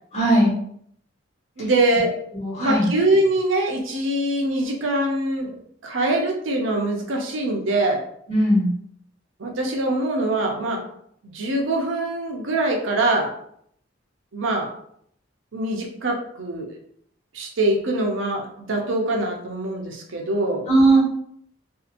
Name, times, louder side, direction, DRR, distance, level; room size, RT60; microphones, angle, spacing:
voice 1, 0.1-0.6 2.3-2.9 8.3-8.7 20.7-21.0, right 1 dB, 35° left, -6 dB, 1.2 m, -18 dB
voice 2, 1.6-2.1 2.6-5.6 5.8-8.0 9.4-10.8 11.2-13.3 14.3-14.7 15.5-16.7 17.3-20.7, right 2 dB, 85° right, 1 dB, 0.6 m, -23 dB
2.7 x 2.5 x 2.5 m, 0.68 s
head